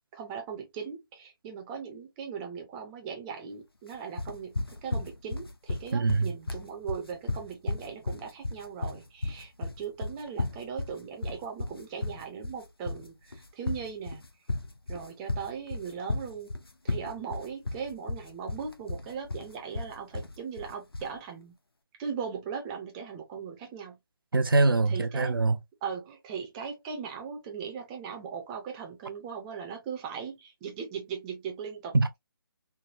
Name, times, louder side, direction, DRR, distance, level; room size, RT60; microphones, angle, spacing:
voice 1, 0.1-14.2 14.9-16.5 16.8-21.5 22.0-24.0 24.9-25.4 25.8-31.9, right 6 dB, 15° right, 0.6 m, -39 dB
sound 1, 4.2-21.2, left 2 dB, 90° left, 0.7 m, -34 dB
voice 2, 5.9-6.3 24.3-25.6 31.9-32.2, right 3 dB, 70° right, 0.7 m, -23 dB
3.3 x 2.1 x 2.5 m
figure-of-eight pair, 150°, 12 cm